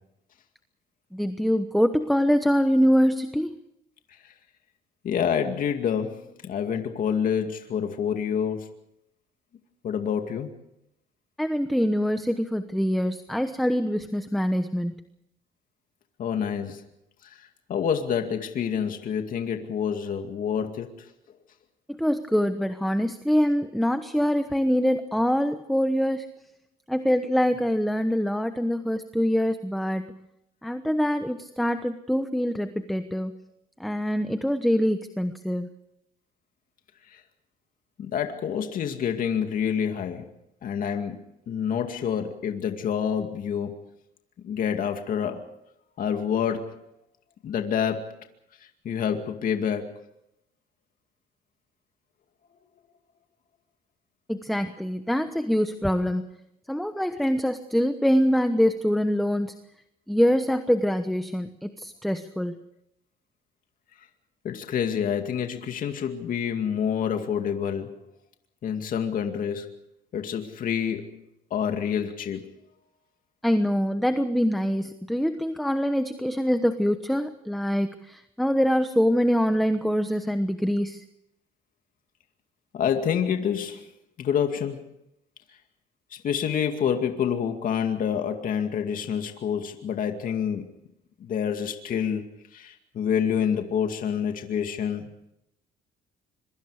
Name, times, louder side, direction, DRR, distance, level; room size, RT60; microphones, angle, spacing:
voice 1, 1.1-3.5 11.4-14.9 22.0-26.3 26.9-30.2 30.6-33.3 33.8-35.7 54.3-56.2 56.7-59.5 60.1-62.6 73.4-81.0, equal, ahead, 9 dB, 1.1 m, -24 dB
voice 2, 5.0-8.8 9.8-10.5 16.2-16.8 17.2-21.1 37.1-37.2 38.0-40.3 40.6-41.2 41.5-43.8 44.4-45.4 46.0-46.8 47.4-48.1 48.6-50.0 64.4-68.0 68.6-69.7 70.1-71.2 71.5-72.5 82.7-83.9 84.2-84.9 86.1-90.7 91.2-92.2 92.5-95.1, left 8 dB, 55° left, 5 dB, 2.3 m, -28 dB
26.0 x 23.5 x 5.0 m, 0.81 s
cardioid pair, 110°, 17 cm